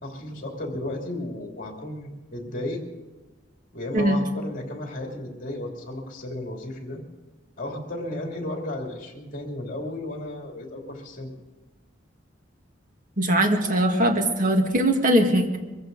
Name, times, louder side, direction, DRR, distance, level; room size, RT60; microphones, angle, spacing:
voice 1, 0.0-2.8 3.7-7.0 7.6-11.3, left 1 dB, 45° left, 1 dB, 2.9 m, -34 dB
voice 2, 13.2-15.6, right 1 dB, 45° right, 3 dB, 1.9 m, -21 dB
23.5 x 14.5 x 4.0 m, 1.2 s
head